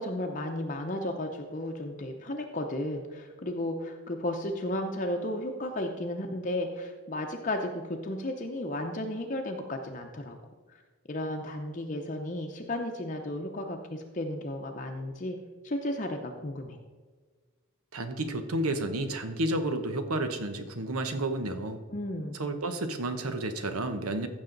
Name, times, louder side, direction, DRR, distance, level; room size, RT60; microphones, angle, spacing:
voice 1, 0.0-10.4 11.1-15.4 15.6-16.8 21.9-22.4, left 1 dB, 35° left, 3 dB, 0.7 m, -34 dB
voice 2, 17.9-21.8 22.3-24.3, right 2 dB, 90° right, 8 dB, 1.0 m, -31 dB
15.0 x 6.2 x 3.9 m, 1.4 s
head